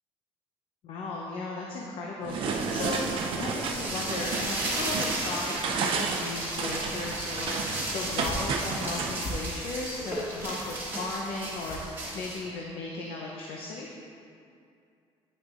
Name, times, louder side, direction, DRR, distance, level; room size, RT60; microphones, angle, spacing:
voice 1, 0.8-3.1 3.4-7.6 7.9-11.8 12.1-13.9, left 3 dB, 65° left, -1 dB, 0.7 m, -36 dB
sound 1, 2.2-9.2, right 4 dB, 55° right, 0.6 m, -32 dB
sound 2, 2.3-12.4, right 1 dB, 20° right, 1.4 m, -35 dB
sound 3, 8.2-12.5, right 1 dB, 35° left, 1.2 m, -41 dB
9.3 x 6.2 x 2.5 m, 2.4 s
cardioid pair, 130°, 11 cm